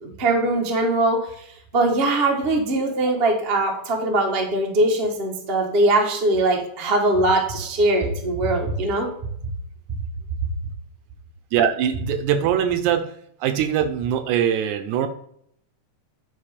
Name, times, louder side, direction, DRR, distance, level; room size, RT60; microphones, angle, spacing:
voice 1, 0.0-1.2 1.7-9.1, right 2 dB, 50° right, 1 dB, 0.6 m, -21 dB
voice 2, 11.5-13.1 13.4-15.1, right 9 dB, 75° right, 9 dB, 1.9 m, -22 dB
10.0 x 4.0 x 5.1 m, 0.69 s
omnidirectional pair, 3.7 m